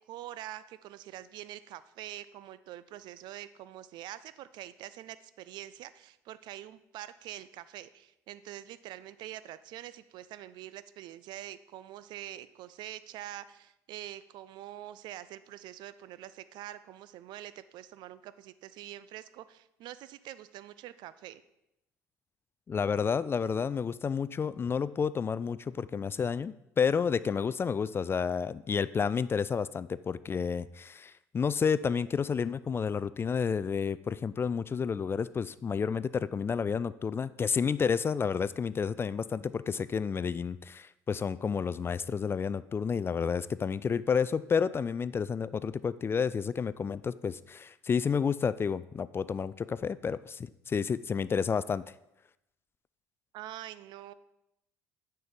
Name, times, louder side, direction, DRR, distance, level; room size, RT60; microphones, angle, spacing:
voice 1, 0.1-21.4 53.3-54.1, right 13 dB, 60° right, 15 dB, 0.5 m, -45 dB
voice 2, 22.7-51.8, left 6 dB, 25° left, 17 dB, 0.3 m, -30 dB
9.5 x 4.5 x 5.2 m, 0.86 s
hypercardioid pair, 60°, 9 cm